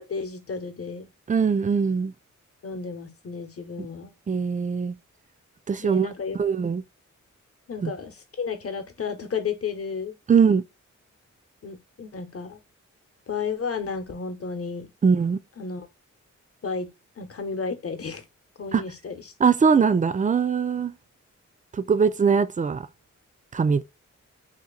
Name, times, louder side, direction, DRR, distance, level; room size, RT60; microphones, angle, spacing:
voice 1, 0.0-1.1 2.6-4.1 5.8-6.4 7.7-10.1 11.6-12.6 13.3-14.9 15.6-15.9 16.6-16.9 17.2-18.2 18.6-19.3, left 5 dB, 45° left, 0.9 m, -32 dB
voice 2, 1.3-2.1 4.3-5.0 5.7-6.1 6.4-6.8 7.8-7.9 10.3-10.6 15.0-15.4 18.7-18.8 19.4-20.9 21.7-22.9 23.5-23.8, right 6 dB, 25° right, 0.4 m, -21 dB
2.8 x 2.6 x 3.8 m
cardioid pair, 50°, 31 cm